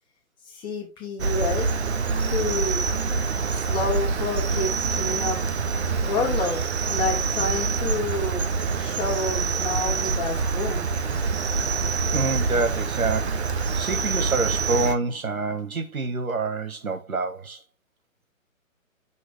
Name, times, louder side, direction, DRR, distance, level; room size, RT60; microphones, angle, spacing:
voice 1, 0.5-1.7 2.3-2.8 3.5-5.4 6.0-6.6 6.9-8.4 8.7-10.9, left 3 dB, 10° left, 1.7 m, -29 dB
Cricket, 1.2-14.9, right 4 dB, 50° right, 0.9 m, -26 dB
voice 2, 12.1-17.6, right 3 dB, 85° right, 1.5 m, -27 dB
8.1 x 6.2 x 3.0 m
hypercardioid pair, 145°, 41 cm